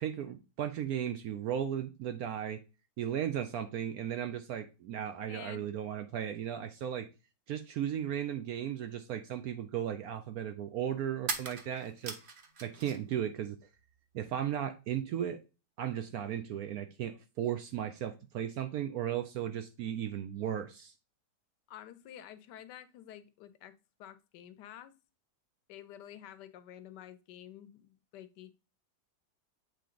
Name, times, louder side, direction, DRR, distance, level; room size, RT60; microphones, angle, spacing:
voice 1, 0.0-2.6 3.0-7.1 7.5-12.2 12.6-13.6 14.1-15.4 15.8-20.9, right 10 dB, 70° right, 0.9 m, -36 dB
voice 2, 5.3-5.7 21.7-23.7 24.0-24.9 25.7-28.5, left 11 dB, 75° left, 1.2 m, -50 dB
sound 1, 11.3-13.2 13.4-14.3, right 4 dB, 45° right, 0.7 m, -41 dB
7.7 x 3.5 x 3.7 m
omnidirectional pair, 1.9 m